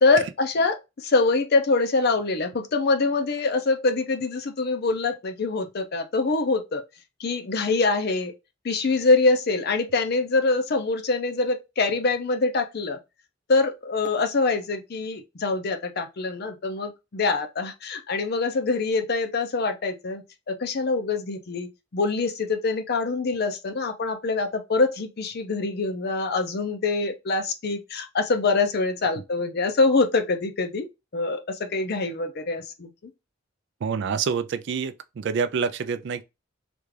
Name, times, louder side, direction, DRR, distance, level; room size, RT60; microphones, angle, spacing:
voice 1, 0.0-6.8 7.2-8.3 8.6-13.0 13.5-32.9, left 3 dB, 55° left, 0.6 m, -24 dB
voice 2, 33.8-36.2, right 6 dB, 60° right, 0.4 m, -27 dB
3.4 x 2.4 x 3.2 m
head